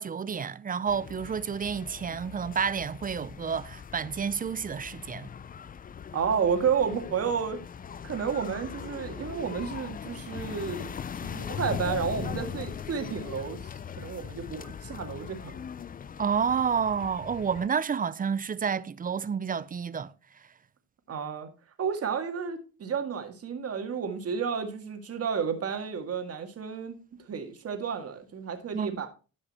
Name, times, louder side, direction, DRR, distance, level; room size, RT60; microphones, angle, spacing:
voice 1, 0.0-5.3 16.2-20.1 28.7-29.0, right 6 dB, 30° right, 0.5 m, -30 dB
sound 1, 0.9-17.7, left 7 dB, 30° left, 0.4 m, -40 dB
voice 2, 6.1-7.6 8.0-13.6 14.0-15.6 21.1-21.5 21.8-27.0 27.3-29.1, right 6 dB, 50° right, 2.0 m, -31 dB
12.5 x 5.4 x 4.3 m
cardioid pair, 90°, 30 cm